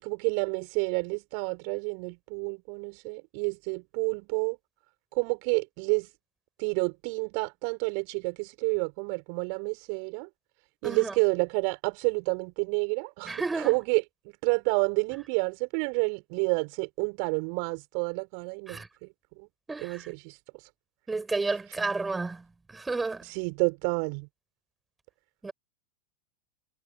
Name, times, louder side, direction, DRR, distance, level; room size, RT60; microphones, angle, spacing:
voice 1, 0.0-4.6 5.1-6.1 6.6-10.3 10.8-14.0 14.4-18.8 19.4-19.5 19.8-20.7 23.2-24.3, right 40 dB or more, 45° right, 4.6 m, -29 dB
voice 2, 10.8-11.1 13.3-13.8 18.7-18.9 19.7-20.0 21.1-23.3 25.4-25.5, right 3 dB, 10° right, 6.7 m, -32 dB
figure-of-eight pair, 90°, 0 cm